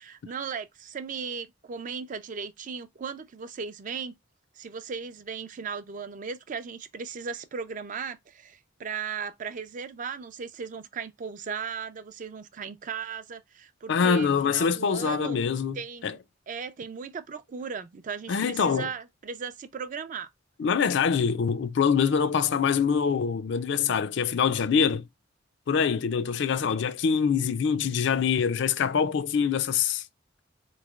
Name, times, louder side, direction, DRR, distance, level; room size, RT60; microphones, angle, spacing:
voice 1, 0.0-4.1 4.6-15.4 15.7-20.3, right 6 dB, 40° right, 0.4 m, -37 dB
voice 2, 13.9-15.8 16.0-16.2 18.3-18.9 20.6-25.0 25.7-30.0, left 6 dB, 65° left, 0.4 m, -24 dB
4.3 x 3.1 x 2.3 m
head